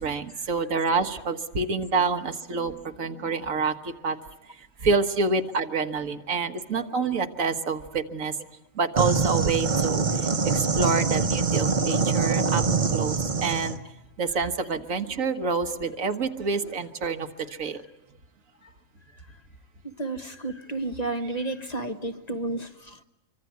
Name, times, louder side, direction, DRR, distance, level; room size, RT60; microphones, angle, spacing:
voice 1, 0.0-4.2 4.8-8.3 8.8-13.8 14.2-17.8, right 4 dB, 80° right, 8 dB, 1.8 m, -27 dB
sound 1, 9.0-13.8, right 5 dB, 35° right, 1.2 m, -24 dB
voice 2, 19.8-23.0, right 2 dB, 30° left, 7 dB, 1.4 m, -32 dB
26.0 x 24.5 x 9.4 m, 0.91 s
omnidirectional pair, 1.4 m